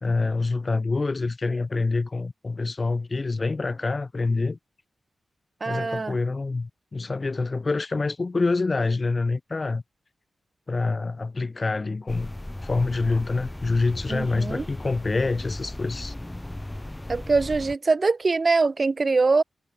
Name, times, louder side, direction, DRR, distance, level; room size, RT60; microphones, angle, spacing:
voice 1, 0.0-4.6 5.7-9.8 10.7-12.3 12.6-16.1, left 3 dB, 40° left, 0.6 m, -26 dB
voice 2, 5.6-6.2 14.1-14.7 17.1-19.4, right 3 dB, 45° right, 0.6 m, -23 dB
sound 1, 12.1-17.8, left 1 dB, 15° left, 1.0 m, -36 dB
cardioid pair, 50°, 0 cm